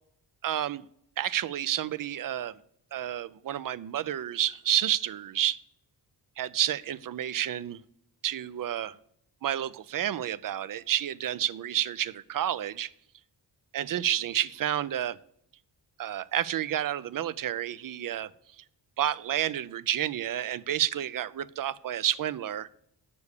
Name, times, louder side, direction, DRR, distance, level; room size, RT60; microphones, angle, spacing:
voice 1, 0.4-0.9 1.2-2.6 2.9-5.6 6.4-7.8 8.2-9.0 9.4-12.9 13.7-15.2 16.0-18.3 18.6-18.7 19.0-22.7, right 11 dB, 50° right, 0.5 m, -30 dB
8.3 x 6.9 x 6.6 m
wide cardioid pair, 140°, 42 cm